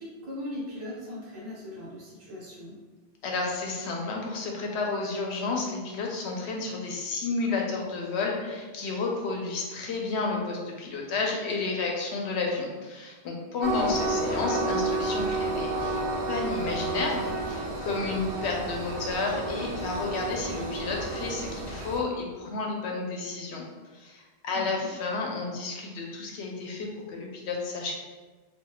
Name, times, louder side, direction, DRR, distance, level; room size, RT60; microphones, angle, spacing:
voice 1, 0.0-2.7 13.7-14.1 24.5-24.9, left 1 dB, 60° right, -7 dB, 1.3 m, -39 dB
voice 2, 3.2-16.0 16.3-23.6 23.9-28.0, left 3 dB, 90° left, 0 dB, 0.9 m, -31 dB
Train, 13.6-22.0, right 2 dB, 90° right, 0.9 m, -31 dB
3.6 x 2.1 x 2.3 m, 1.3 s
omnidirectional pair, 1.1 m